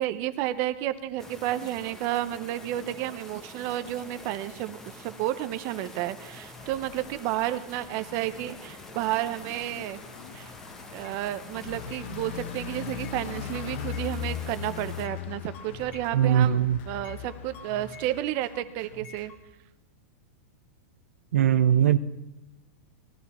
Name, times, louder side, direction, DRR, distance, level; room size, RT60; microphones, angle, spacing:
voice 1, 0.0-10.0 10.3-10.5 10.9-19.3, right 13 dB, 35° right, 11 dB, 0.6 m, -31 dB
sound 1, 1.2-15.1, left 1 dB, 5° left, 0.9 m, -46 dB
sound 2, 6.6-18.2, left 9 dB, 55° left, 0.9 m, -40 dB
sound 3, 10.8-19.4, left 3 dB, 30° left, 1.4 m, -49 dB
voice 2, 16.1-16.8 21.3-22.0, right 9 dB, 85° right, 14 dB, 0.7 m, -20 dB
18.5 x 13.5 x 4.2 m, 0.93 s
supercardioid pair, 170°, 8 cm